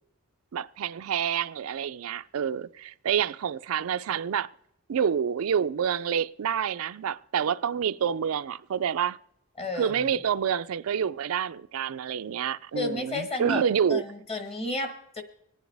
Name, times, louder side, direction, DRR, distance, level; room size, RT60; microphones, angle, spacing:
voice 1, 0.5-4.5 4.9-9.2 9.8-14.0, right 8 dB, 85° right, 0.4 m, -28 dB
voice 2, 9.6-10.1 12.7-13.6 13.9-15.2, left 2 dB, 30° left, 1.4 m, -32 dB
25.0 x 9.3 x 3.3 m
head